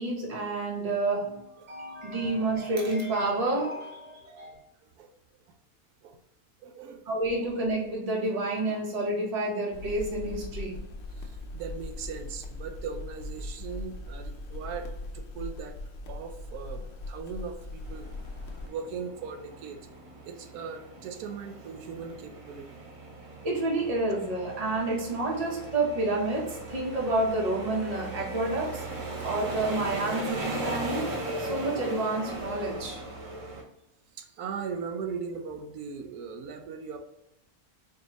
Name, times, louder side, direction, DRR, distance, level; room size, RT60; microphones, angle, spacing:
voice 1, 0.0-4.6 7.1-10.8 23.4-28.8 29.2-31.1 31.4-33.0, right 2 dB, 30° right, -2 dB, 0.9 m, -29 dB
voice 2, 4.8-5.1 6.0-6.2 6.6-7.0 11.1-15.7 16.1-18.1 18.6-19.9 20.3-22.8 34.2-37.0, right 5 dB, 90° right, 5 dB, 1.1 m, -39 dB
sound 1, 9.7-18.7, left 2 dB, 75° left, 0.5 m, -40 dB
sound 2, 17.8-33.6, right 2 dB, 55° right, 0.3 m, -38 dB
4.5 x 2.7 x 3.0 m, 0.87 s
omnidirectional pair, 1.6 m